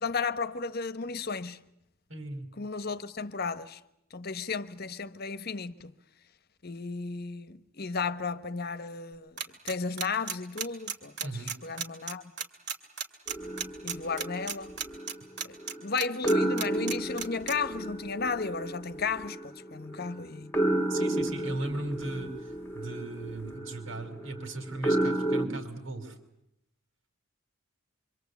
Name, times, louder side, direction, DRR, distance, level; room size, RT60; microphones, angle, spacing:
voice 1, 0.0-1.6 2.6-3.8 4.1-5.9 6.6-9.3 9.6-12.2 13.8-14.7 15.4-15.5 15.8-20.5, left 4 dB, 50° left, 1.1 m, -34 dB
voice 2, 2.1-2.5 11.2-11.5 20.9-26.2, right 2 dB, 75° right, 5.2 m, -37 dB
sound 1, 9.4-16.3 16.6-17.5, right 7 dB, 55° right, 2.8 m, -33 dB
sound 2, 13.3-15.8 16.2-25.5, right 1 dB, 10° left, 1.9 m, -32 dB
26.0 x 25.5 x 8.3 m
head